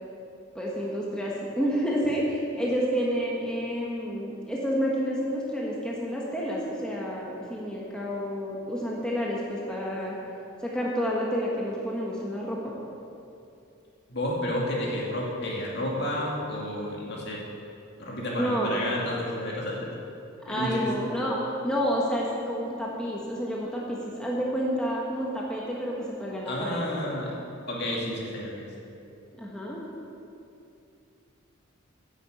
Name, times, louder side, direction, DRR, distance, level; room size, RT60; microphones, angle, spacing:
voice 1, 0.5-10.2 10.6-12.7 18.3-18.8 20.4-21.4 21.6-26.8 29.4-29.8, equal, 5° left, -4 dB, 1.4 m, -29 dB
voice 2, 14.1-17.4 18.0-19.8 20.5-20.9 26.4-27.4 27.7-28.7, left 1 dB, 55° left, -3 dB, 2.4 m, -31 dB
10.5 x 7.3 x 8.0 m, 2.6 s
head